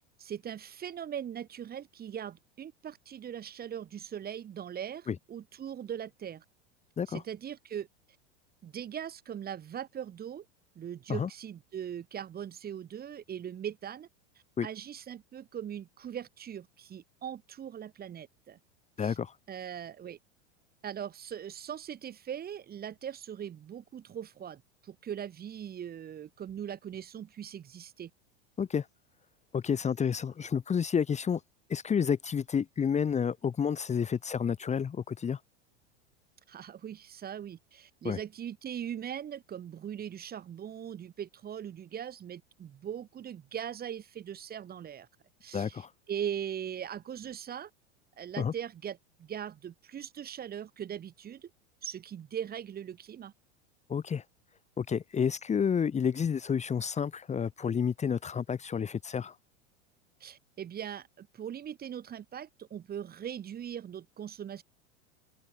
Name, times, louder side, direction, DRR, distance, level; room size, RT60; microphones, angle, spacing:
voice 1, 0.2-6.4 7.1-7.9 8.6-10.4 10.7-14.1 14.6-18.6 19.0-19.2 19.5-20.2 20.8-28.1 36.5-45.1 45.4-47.7 48.2-51.5 51.8-53.3 60.2-64.6, right 9 dB, 25° right, 1.6 m, -40 dB
voice 2, 19.0-19.3 28.6-28.9 29.5-31.4 31.7-35.4 38.0-38.2 45.5-45.9 48.4-48.5 53.9-54.2 54.8-59.3, left 7 dB, 20° left, 1.2 m, -30 dB
open air
hypercardioid pair, 110°, 35 cm